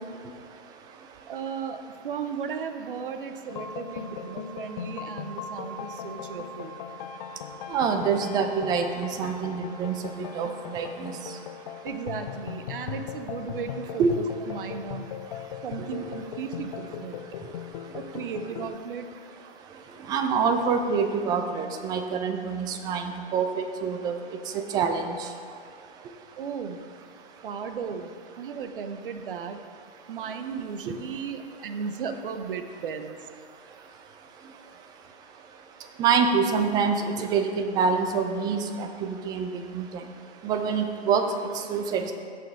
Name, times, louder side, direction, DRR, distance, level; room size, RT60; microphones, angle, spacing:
voice 1, 1.3-6.8 11.8-15.1 15.6-17.2 17.9-19.1 26.4-26.8 27.4-29.6 30.1-33.3, right 6 dB, 55° right, 7 dB, 1.0 m, -35 dB
sound 1, 3.5-18.7, left 8 dB, 40° left, 0.5 m, -38 dB
voice 2, 7.7-11.1 14.0-14.1 20.1-24.1 24.7-25.2 36.0-39.9 40.4-41.2 41.7-42.1, right 6 dB, 10° right, 6 dB, 0.5 m, -26 dB
15.5 x 5.7 x 3.6 m, 2.3 s
figure-of-eight pair, 120°, 32 cm